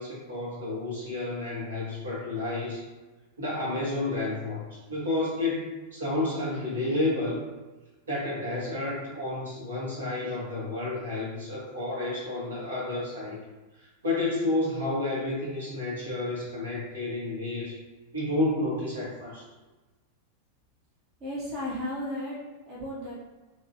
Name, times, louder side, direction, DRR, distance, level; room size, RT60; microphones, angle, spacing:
voice 1, 0.0-2.8 3.4-7.4 8.1-13.4 14.0-17.8 18.1-19.4, left 2 dB, 70° right, -6 dB, 1.2 m, -30 dB
voice 2, 21.2-23.3, left 1 dB, 40° right, -6 dB, 1.0 m, -35 dB
2.9 x 2.7 x 2.8 m, 1.2 s
figure-of-eight pair, 90°, 0 cm